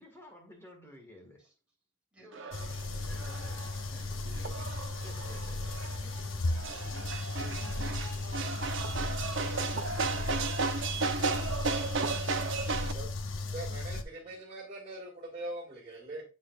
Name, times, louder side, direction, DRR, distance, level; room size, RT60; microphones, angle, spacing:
voice 1, 0.0-1.5 3.0-6.5 6.8-7.0 7.4-7.8, equal, 15° left, 1.8 m, -54 dB
voice 2, 2.1-2.7 6.0-6.1 6.6-7.9 8.7-11.9 12.5-13.0 13.4-14.4, right 1 dB, 5° right, 3.3 m, -57 dB
sound 1, 2.3-12.9, right 4 dB, 70° right, 0.8 m, -35 dB
sound 2, 2.5-14.0, left 2 dB, 80° left, 0.7 m, -36 dB
voice 3, 13.5-16.2, right 1 dB, 30° right, 2.4 m, -42 dB
7.8 x 6.6 x 2.5 m
head